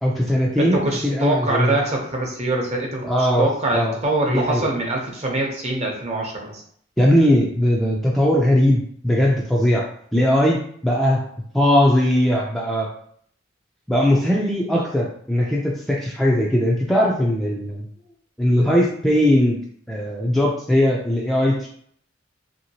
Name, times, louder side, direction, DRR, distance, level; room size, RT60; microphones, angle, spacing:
voice 1, 0.0-1.8 3.0-3.5 3.7-3.9 4.3-4.6 7.0-9.8 10.1-11.2 11.5-12.9 13.9-17.9 18.4-19.6 19.9-21.7, left 1 dB, ahead, -3 dB, 0.4 m, -19 dB
voice 2, 0.6-6.6, right 2 dB, 35° right, 0 dB, 0.7 m, -24 dB
3.0 x 2.8 x 2.8 m, 0.62 s
head